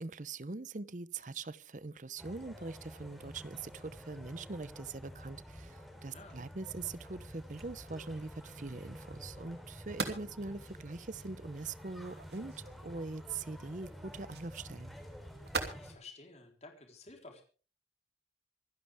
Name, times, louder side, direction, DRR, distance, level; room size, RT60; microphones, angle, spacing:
voice 1, 0.0-15.0, right 3 dB, 45° right, 0.7 m, -43 dB
sound 1, 2.2-15.9, equal, ahead, 3.7 m, -50 dB
voice 2, 6.1-6.4 10.1-10.4 15.7-17.4, left 3 dB, 40° left, 4.0 m, -53 dB
sound 2, 8.3-15.7, right 4 dB, 75° right, 2.8 m, -45 dB
26.0 x 11.0 x 3.6 m
head